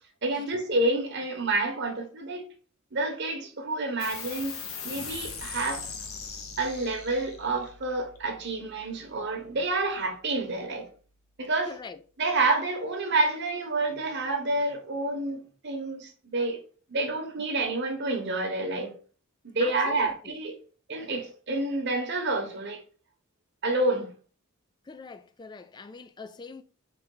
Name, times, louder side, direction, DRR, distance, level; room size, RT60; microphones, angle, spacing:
voice 1, 0.2-2.5 2.9-5.9 6.6-10.9 11.4-11.8 12.2-16.6 16.9-18.9 19.5-20.6 20.9-22.8 23.6-24.1, right 2 dB, 55° right, 1.0 m, -29 dB
sound 1, 4.0-10.9, left 5 dB, 75° left, 0.9 m, -41 dB
voice 2, 11.7-12.0 19.6-20.4 24.9-26.6, left 4 dB, 20° left, 0.3 m, -43 dB
4.1 x 3.3 x 3.8 m
head